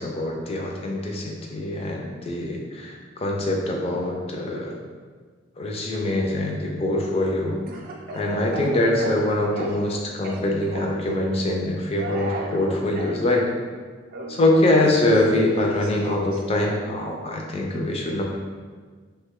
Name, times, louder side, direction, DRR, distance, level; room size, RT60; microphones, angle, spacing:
voice 1, 0.0-4.8 5.6-7.6 8.1-13.5 14.3-18.2, left 1 dB, 30° left, 0 dB, 0.4 m, -23 dB
Speech / Cough, 7.7-9.9 10.2-11.1 12.0-13.2 14.1-16.4, right 2 dB, 50° right, 0.4 m, -36 dB
2.9 x 2.2 x 3.6 m, 1.5 s
head